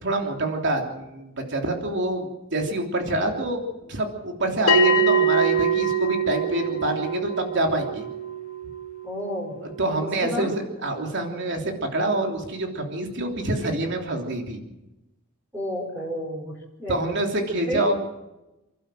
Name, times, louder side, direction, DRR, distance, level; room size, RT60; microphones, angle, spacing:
voice 1, 0.0-8.1 9.6-10.5 10.8-14.6 16.9-17.9, right 1 dB, 60° right, 3 dB, 3.3 m, -26 dB
Bell, 4.7-9.7, right 3 dB, 80° left, 2.0 m, -24 dB
voice 2, 9.0-9.6 10.2-10.5 15.5-16.5 16.8-17.0 17.7-17.9, equal, 15° right, -3 dB, 5.0 m, -30 dB
30.0 x 12.0 x 7.7 m, 0.98 s
head